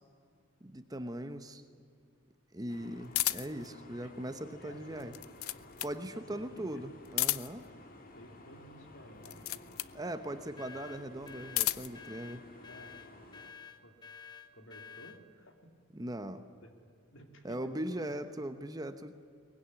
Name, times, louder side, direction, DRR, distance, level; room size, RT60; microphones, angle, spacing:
voice 1, 0.6-1.6 2.5-5.2 5.8-7.6 9.9-12.4 15.9-16.5 17.4-19.1, right 1 dB, 15° right, 9 dB, 0.9 m, -40 dB
sound 1, 2.7-13.5, left 2 dB, 40° left, 2.3 m, -54 dB
sound 2, 3.1-3.7 5.0-6.0 7.1-7.7 9.2-10.0 11.2-12.0, left 16 dB, 85° left, 0.6 m, -33 dB
voice 2, 4.6-5.1 5.4-5.5 6.1-6.7 8.1-9.7 12.5-13.0 13.8-13.9 14.5-15.7 16.6-16.7 17.1-18.1, equal, 60° left, 5 dB, 3.0 m, -54 dB
sound 3, 10.6-15.2, left 7 dB, 20° left, 1.0 m, -50 dB
23.5 x 19.5 x 9.9 m, 2.3 s
head